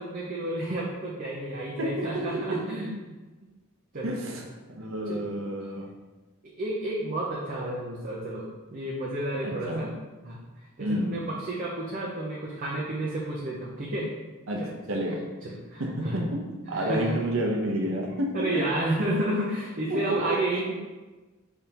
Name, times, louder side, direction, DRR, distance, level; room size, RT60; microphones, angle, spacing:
voice 1, 0.0-3.1 3.9-4.4 5.1-5.2 5.6-5.7 6.6-9.9 10.2-10.4 10.8-14.1 14.6-14.7 15.4-16.2 16.7-17.2 18.3-20.7, right 1 dB, 40° right, -5 dB, 0.7 m, -31 dB
voice 2, 1.8-2.6 4.0-4.4 4.7-5.9 9.4-9.9 10.8-11.3 14.5-15.2 15.8-18.6 19.9-20.6, right 1 dB, 65° right, 0 dB, 0.8 m, -30 dB
5.3 x 3.5 x 2.9 m, 1.2 s
head